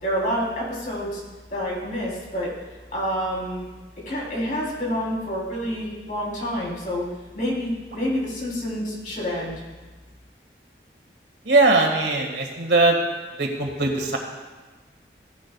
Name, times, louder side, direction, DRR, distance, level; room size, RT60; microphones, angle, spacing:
voice 1, 0.0-1.2 1.5-2.5 2.9-3.7 4.1-7.0 7.3-9.6, equal, 45° left, -4 dB, 3.6 m, -28 dB
voice 2, 11.5-13.0 13.4-14.2, right 2 dB, 80° right, 2 dB, 1.8 m, -20 dB
16.5 x 11.0 x 2.3 m, 1.3 s
head